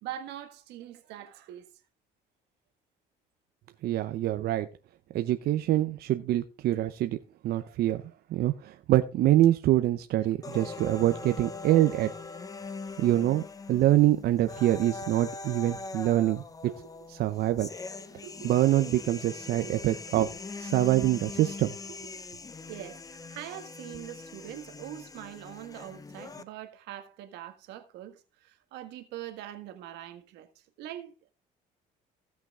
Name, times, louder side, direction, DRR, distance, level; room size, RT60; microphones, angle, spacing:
voice 1, 0.0-1.8 10.3-10.4 10.9-11.1 12.5-13.0 16.6-17.1 18.1-18.5 19.6-19.7 20.1-20.3 22.7-31.3, right 12 dB, 90° right, 1.6 m, -43 dB
voice 2, 3.8-4.7 5.1-7.2 7.4-12.1 13.0-16.4 17.2-17.7 18.4-20.2 20.7-21.7, right 14 dB, 70° right, 0.8 m, -25 dB
sound 1, 10.4-26.4, left 4 dB, 20° left, 0.9 m, -42 dB
16.0 x 5.9 x 3.6 m
cardioid pair, 110°, 17 cm